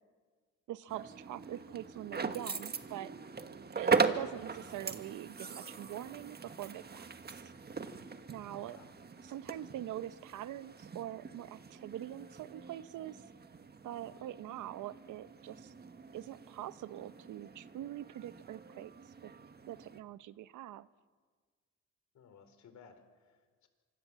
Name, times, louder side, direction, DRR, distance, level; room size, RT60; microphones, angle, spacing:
voice 1, 0.7-3.1 3.7-7.4 8.3-8.8 9.2-13.2 13.8-15.7 16.1-19.3 19.7-20.9, right 13 dB, 85° right, 14 dB, 1.0 m, -44 dB
sound 1, 0.9-20.0, right 5 dB, 30° right, 1.7 m, -40 dB
voice 2, 8.5-8.9 22.1-23.7, left 6 dB, 65° left, 9 dB, 4.3 m, -58 dB
25.5 x 25.0 x 7.5 m, 1.5 s
cardioid pair, 90°, 30 cm